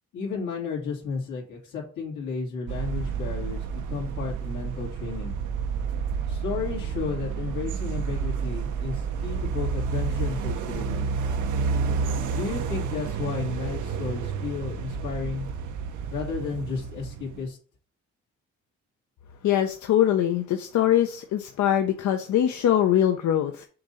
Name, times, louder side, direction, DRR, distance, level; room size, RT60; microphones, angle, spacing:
voice 1, 0.1-5.3 6.3-11.1 12.3-15.5 16.1-17.6, left 5 dB, 90° left, -2 dB, 2.6 m, -33 dB
sound 1, 2.7-17.5, right 6 dB, 80° right, 0.8 m, -30 dB
voice 2, 19.4-23.6, left 11 dB, 70° left, 5 dB, 0.7 m, -22 dB
6.6 x 2.8 x 5.6 m, 0.41 s
cardioid pair, 90°, 30 cm